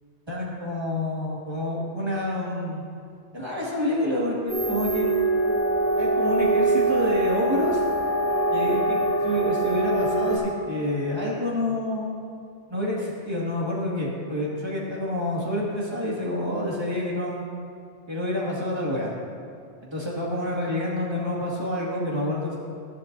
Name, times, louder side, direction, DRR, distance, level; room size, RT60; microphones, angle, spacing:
voice 1, 0.3-2.8 3.3-5.1 6.0-7.8 8.5-12.2 12.7-17.4 18.1-19.1 19.8-22.6, left 1 dB, 25° right, -5 dB, 2.1 m, -28 dB
sound 1, 4.5-10.4, right 2 dB, 90° left, 2.7 m, -23 dB
13.5 x 11.5 x 2.7 m, 2.3 s
omnidirectional pair, 1.1 m